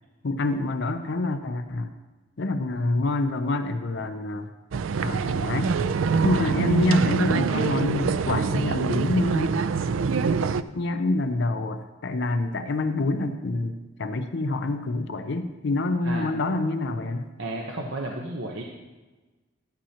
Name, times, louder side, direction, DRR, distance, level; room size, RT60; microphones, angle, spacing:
voice 1, 0.2-1.9 2.4-4.5 5.0-5.7 6.2-9.7 10.7-17.3, left 2 dB, 65° left, 8 dB, 0.6 m, -27 dB
sound 1, 4.7-10.6, right 5 dB, 85° right, 0.4 m, -24 dB
voice 2, 17.4-18.6, right 1 dB, 70° right, 0 dB, 1.0 m, -32 dB
11.5 x 11.0 x 2.9 m, 1.2 s
head